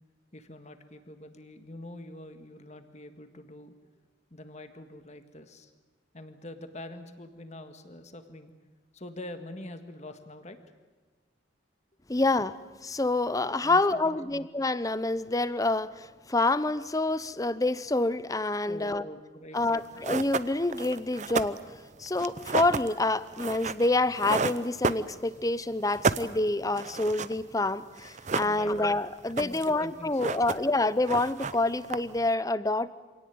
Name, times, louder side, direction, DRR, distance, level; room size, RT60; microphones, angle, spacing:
voice 1, 0.3-3.7 4.3-5.7 6.1-8.5 8.9-10.6 13.6-14.5 18.6-20.1 28.4-28.8 29.4-30.7, left 1 dB, 35° left, 8 dB, 1.8 m, -45 dB
voice 2, 12.1-12.5 12.8-19.0 19.5-21.6 22.0-32.9, left 2 dB, 20° left, 16 dB, 0.7 m, -27 dB
sound 1, 19.6-19.7 20.0-25.5 25.8-27.4 27.7-27.8 28.0-28.9 29.2-29.8 30.0-30.8 31.0-32.3, right 4 dB, 40° right, 0.7 m, -31 dB
26.0 x 18.0 x 9.5 m, 1.3 s
head